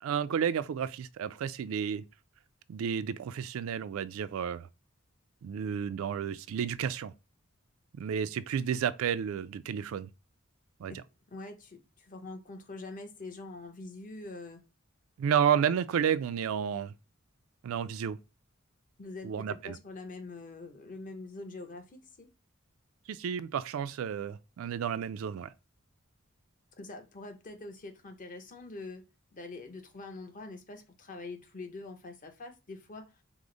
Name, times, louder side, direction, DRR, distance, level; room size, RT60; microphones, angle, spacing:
voice 1, 0.0-2.0 2.7-4.7 5.4-7.1 8.0-10.1 10.8-11.0 15.2-16.9 17.6-18.2 19.2-19.8 23.1-25.5, right 8 dB, 70° right, 0.3 m, -31 dB
voice 2, 11.3-14.6 19.0-22.3 26.8-29.0 29.3-33.0, left 3 dB, 40° left, 0.8 m, -44 dB
4.8 x 2.0 x 3.8 m
head